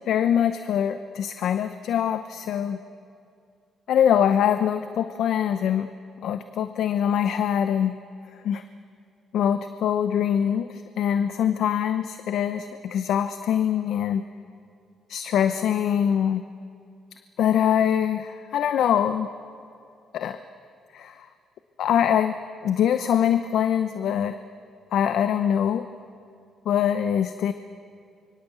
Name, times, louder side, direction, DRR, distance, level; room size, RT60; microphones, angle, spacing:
voice 1, 0.0-2.8 3.9-5.9 6.2-8.0 8.4-8.6 9.3-14.2 15.1-16.4 17.4-19.3 20.1-20.4 20.9-21.2 21.8-22.3 22.6-24.4 24.9-25.8 26.7-27.5, left 9 dB, 75° left, 10 dB, 0.8 m, -23 dB
25.5 x 24.0 x 8.2 m, 2.5 s
cardioid pair, 90°, 0 cm